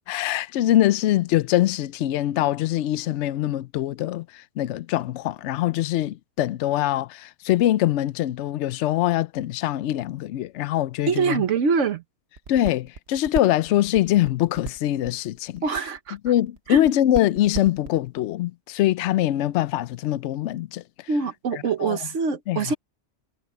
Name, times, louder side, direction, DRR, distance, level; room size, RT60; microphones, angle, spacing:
voice 1, 0.1-11.4 12.5-15.6 16.2-20.8 21.5-22.0 22.5-22.6, left 13 dB, 75° left, 0.9 m, -23 dB
voice 2, 11.1-12.0 15.6-16.2 16.7-16.8 21.1-22.7, right 5 dB, 85° right, 1.4 m, -24 dB
sound 1, 12.4-18.2, right 4 dB, 60° right, 1.5 m, -35 dB
omnidirectional pair, 1.2 m